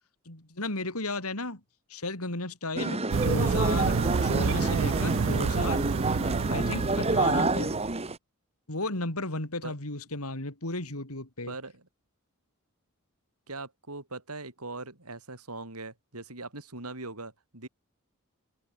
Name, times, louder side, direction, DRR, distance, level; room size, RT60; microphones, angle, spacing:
voice 1, 0.2-1.6 1.9-5.9 6.5-7.7 8.7-11.5, left 2 dB, 80° left, 4.9 m, -34 dB
sound 1, 2.8-8.2, right 2 dB, 30° right, 2.4 m, -28 dB
sound 2, 3.1-8.1, right 5 dB, 60° right, 0.4 m, -29 dB
voice 2, 11.5-11.8 13.5-17.7, right 3 dB, 90° right, 6.6 m, -41 dB
head